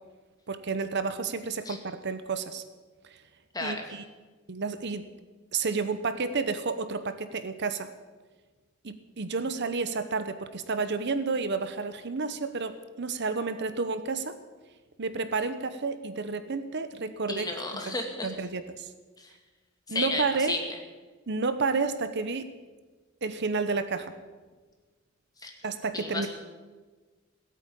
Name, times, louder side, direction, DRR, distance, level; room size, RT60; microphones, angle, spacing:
voice 1, 0.5-2.6 3.0-3.2 3.6-4.0 4.5-5.0 5.5-7.9 8.8-14.4 15.0-17.5 17.8-17.9 18.2-18.9 19.9-20.6 21.3-22.5 23.2-24.1 25.6-26.3, right 4 dB, 60° right, 11 dB, 0.9 m, -30 dB
voice 2, 17.3-18.3 19.2-19.3 19.9-20.6 25.4-25.5 25.9-26.3, left 2 dB, 20° left, 2 dB, 2.2 m, -32 dB
17.0 x 8.6 x 8.5 m, 1.3 s
head